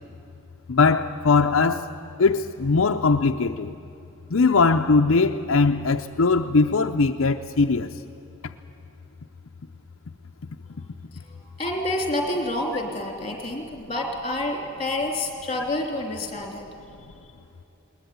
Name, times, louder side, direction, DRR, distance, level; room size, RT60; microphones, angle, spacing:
voice 1, 0.7-1.9 2.2-3.7 4.3-7.9, left 4 dB, 70° left, 0.6 m, -20 dB
voice 2, 11.1-16.7 17.1-17.4, left 1 dB, 30° left, 3.2 m, -29 dB
21.0 x 19.5 x 9.5 m
head